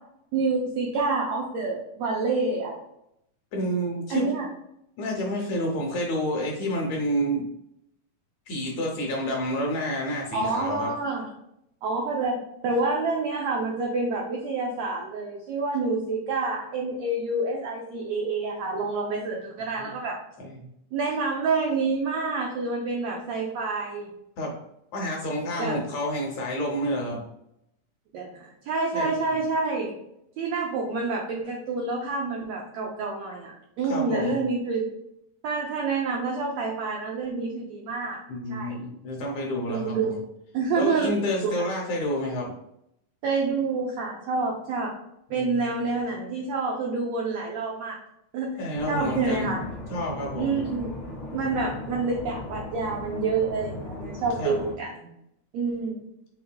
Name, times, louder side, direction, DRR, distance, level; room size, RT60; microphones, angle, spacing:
voice 1, 0.3-2.8 4.1-4.5 10.3-11.3 11.8-20.2 20.9-24.1 25.6-25.8 28.1-29.9 30.4-34.9 35.4-38.2 38.5-38.9 39.7-40.2 40.5-41.1 41.4-41.5 43.2-44.9 45.3-48.0 48.3-49.6 50.4-50.9 51.3-55.1 55.5-56.1, right 3 dB, 80° right, -1 dB, 1.5 m, -28 dB
voice 2, 3.5-4.3 5.0-7.5 8.5-10.9 19.8-19.9 20.4-20.6 24.4-24.5 24.9-27.2 28.9-29.4 33.9-34.4 38.3-40.2 40.7-42.5 45.3-45.8 48.6-49.5 49.9-50.6 54.4-54.6, equal, 70° left, 0 dB, 1.8 m, -29 dB
sound 1, 48.7-54.7, left 2 dB, 45° left, 0.6 m, -37 dB
5.4 x 3.9 x 2.2 m, 0.79 s
omnidirectional pair, 3.8 m